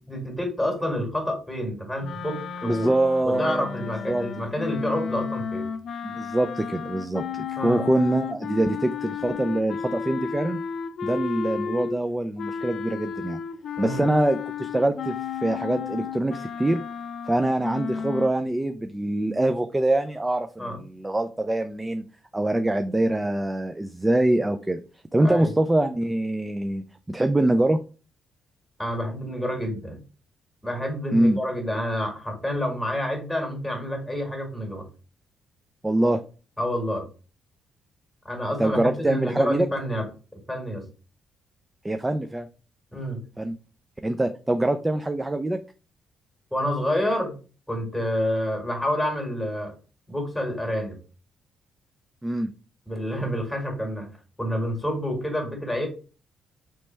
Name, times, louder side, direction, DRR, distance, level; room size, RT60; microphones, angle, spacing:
voice 1, 0.0-2.9 3.2-5.7 7.6-7.8 13.8-14.1 20.6-20.8 25.2-25.5 28.8-30.0 30.6-34.8 36.6-37.0 38.3-40.1 40.5-40.8 42.9-43.2 46.5-47.4 47.7-49.7 50.1-51.0 52.9-54.1 54.4-55.9, equal, 5° left, 2 dB, 2.0 m, -28 dB
sound 1, 2.0-12.0 12.4-18.3, left 6 dB, 60° left, 0.4 m, -33 dB
voice 2, 2.6-3.7 4.1-4.3 6.0-10.6 11.0-13.4 13.8-16.8 17.3-22.1 22.3-24.8 25.1-27.8 31.1-31.4 35.8-36.2 38.6-39.7 41.8-42.5 43.4-43.6 44.0-45.6 52.2-52.5, right 1 dB, 15° right, 8 dB, 0.3 m, -24 dB
3.2 x 3.1 x 4.4 m, 0.35 s
cardioid pair, 90°, 0 cm